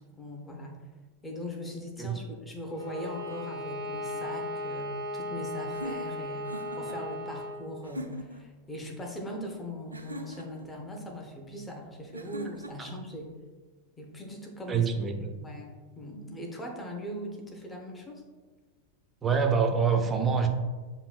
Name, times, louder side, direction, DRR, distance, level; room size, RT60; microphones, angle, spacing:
voice 1, 0.2-0.9 1.2-13.3 14.0-14.9 15.4-18.2, equal, 15° left, 0 dB, 0.8 m, -40 dB
Bowed string instrument, 2.7-7.6, left 1 dB, 90° left, 1.5 m, -36 dB
sound 1, 5.7-7.0 7.8-8.5 9.9-10.7 12.1-12.9, equal, 80° right, 0.4 m, -41 dB
voice 2, 14.7-15.5 19.2-20.5, right 6 dB, 20° right, 4 dB, 0.5 m, -26 dB
6.9 x 2.7 x 2.4 m, 1.3 s
figure-of-eight pair, 90°, 0 cm